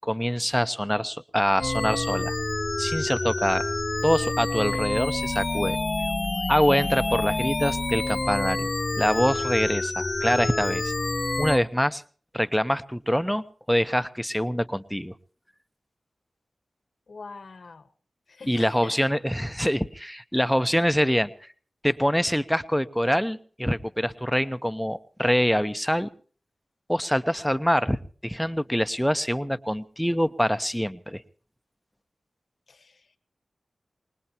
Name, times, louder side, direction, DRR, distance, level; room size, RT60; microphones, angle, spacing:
voice 1, 0.0-2.3 2.8-3.6 4.0-5.8 6.5-8.7 9.0-10.9 11.4-12.0 12.3-15.1 18.5-21.3 21.8-26.1 26.9-31.2, equal, ahead, 11 dB, 0.9 m, -25 dB
sound 1, 1.6-11.6, left 2 dB, 35° left, 0.7 m, -28 dB
voice 2, 17.1-17.9 18.3-19.0 32.7-33.1, left 4 dB, 70° left, 10 dB, 1.4 m, -43 dB
24.0 x 20.0 x 2.9 m, 0.43 s
cardioid pair, 60°, 0 cm